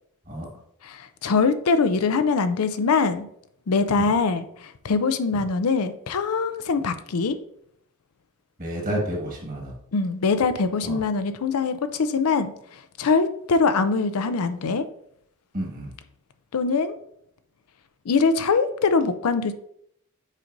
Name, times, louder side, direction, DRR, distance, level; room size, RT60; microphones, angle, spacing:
voice 1, 0.8-3.3 3.7-7.4 9.9-14.8 16.5-16.9 18.1-19.5, left 4 dB, 75° left, 10 dB, 0.5 m, -23 dB
voice 2, 8.6-9.8 10.8-11.0 15.5-15.9, right 1 dB, 35° right, 0 dB, 1.6 m, -30 dB
7.4 x 5.1 x 2.6 m, 0.72 s
head